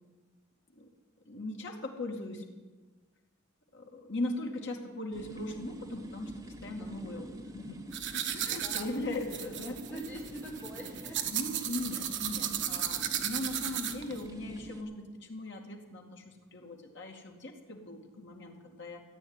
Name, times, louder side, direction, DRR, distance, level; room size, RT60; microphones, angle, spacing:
voice 1, 1.3-2.4 3.7-7.2 7.5-7.8 8.1-9.8 11.3-19.0, left 1 dB, 55° left, 2 dB, 2.3 m, -39 dB
sound 1, 5.1-14.8, right 1 dB, 15° right, 1.1 m, -47 dB
voice 2, 6.8-7.3 8.6-8.9 9.2-9.4 9.8-11.3, equal, 10° left, -4 dB, 3.7 m, -45 dB
sound 2, 7.9-14.2, right 10 dB, 55° right, 1.1 m, -35 dB
14.5 x 9.0 x 9.7 m, 1.3 s
head